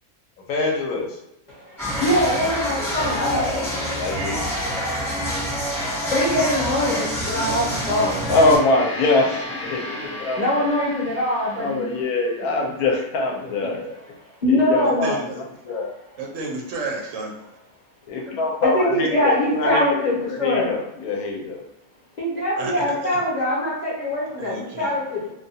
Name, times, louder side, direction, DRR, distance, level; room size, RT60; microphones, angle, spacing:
voice 1, 0.5-1.2 3.9-4.4 8.3-10.7 11.5-14.0 14.5-15.9 18.1-21.6, left 3 dB, 80° left, 1.0 m, -24 dB
voice 2, 1.5-3.6 4.8-4.9 6.1-8.3 10.0-10.1 10.4-11.8 13.4-13.7 14.4-15.2 15.7-15.8 18.6-20.7 22.2-25.3, left 1 dB, 40° left, 0.7 m, -23 dB
sound 1, 1.8-8.6, equal, 5° left, 0.5 m, -26 dB
Gong, 8.2-12.8, left 1 dB, 55° left, 1.0 m, -36 dB
voice 3, 14.8-15.4 16.2-17.4 22.6-23.2 24.4-24.9, right 3 dB, 65° right, 1.0 m, -31 dB
2.6 x 2.3 x 2.7 m
omnidirectional pair, 1.5 m